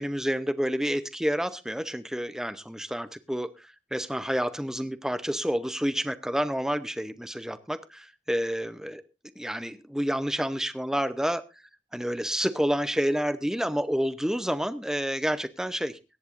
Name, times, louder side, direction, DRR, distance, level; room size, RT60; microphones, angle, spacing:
voice 1, 0.0-9.0 9.4-11.4 11.9-16.0, equal, 5° right, 13 dB, 0.7 m, -29 dB
23.5 x 10.5 x 2.6 m, 0.28 s
head